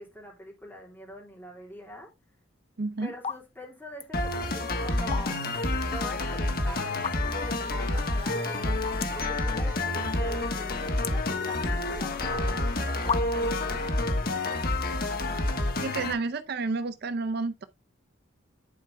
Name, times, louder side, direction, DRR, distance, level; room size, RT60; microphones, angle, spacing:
voice 1, 0.0-2.1 3.0-14.6, equal, 10° left, 3.4 m, -44 dB
sound 1, 2.4-2.7 3.1-3.4 3.7-4.1 4.9-5.6 6.0-6.1 6.9-7.5 8.0-8.1 8.3-8.4 8.9-9.3 9.7-10.2 10.5-11.9 12.6-12.7 13.1-13.6, left 7 dB, 30° left, 0.4 m, -34 dB
voice 2, 2.8-3.1 15.8-17.7, right 3 dB, 55° right, 0.5 m, -30 dB
sound 2, 4.1-16.1, left 2 dB, 50° left, 1.3 m, -28 dB
10.5 x 4.7 x 3.3 m
head